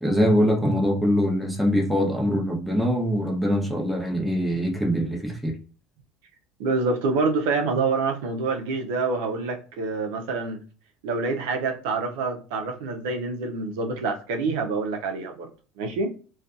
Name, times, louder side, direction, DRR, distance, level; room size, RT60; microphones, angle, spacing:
voice 1, 0.0-5.5, equal, ahead, 0 dB, 0.7 m, -23 dB
voice 2, 6.6-10.6 11.0-15.5 15.8-16.1, right 4 dB, 85° right, 4 dB, 0.6 m, -26 dB
2.6 x 2.3 x 2.3 m, 0.37 s
supercardioid pair, 125°, 0 cm